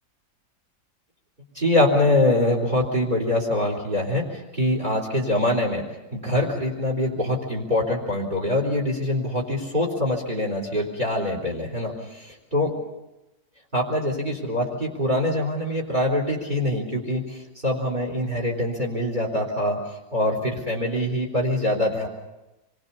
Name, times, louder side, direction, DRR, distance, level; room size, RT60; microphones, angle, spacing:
voice 1, 1.5-5.8 6.1-11.9 12.5-12.8 13.7-17.4 17.6-19.8 20.1-22.1, left 1 dB, 25° right, 0 dB, 3.9 m, -24 dB
26.5 x 22.5 x 7.0 m, 1.0 s
omnidirectional pair, 1.9 m